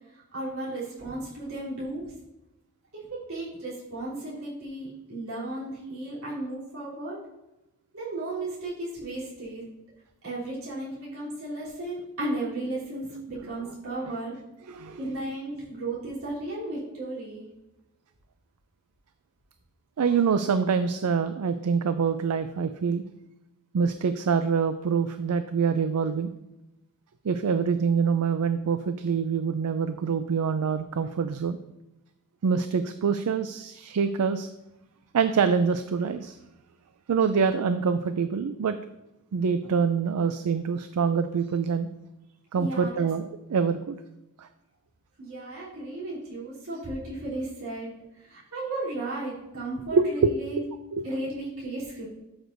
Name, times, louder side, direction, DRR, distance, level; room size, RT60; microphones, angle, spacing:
voice 1, 0.3-2.1 2.9-7.2 7.9-9.6 10.2-14.4 15.0-17.5 42.5-42.9 45.2-47.9 48.2-50.6 51.0-52.1, right 2 dB, 70° right, -9 dB, 3.3 m, -34 dB
voice 2, 14.7-15.0 20.0-23.0 23.7-26.3 27.2-31.6 32.4-34.5 35.1-36.4 37.1-38.8 39.3-41.9 42.5-44.0 44.4-44.5 49.9-50.7 50.9-51.1, right 6 dB, 90° right, 10 dB, 0.4 m, -25 dB
13.0 x 6.1 x 2.6 m, 0.94 s
head